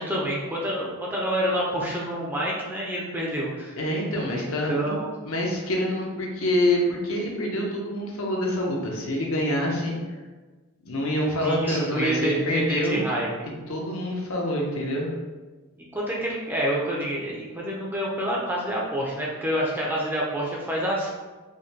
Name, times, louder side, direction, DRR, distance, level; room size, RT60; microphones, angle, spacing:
voice 1, 0.0-3.8 4.3-5.1 11.4-13.3 15.9-21.1, right 1 dB, 10° right, -4 dB, 0.5 m, -27 dB
voice 2, 3.8-4.9 5.2-9.9 10.8-13.0 13.7-15.1, left 1 dB, 70° left, -1 dB, 0.7 m, -26 dB
4.9 x 2.1 x 2.8 m, 1.3 s
head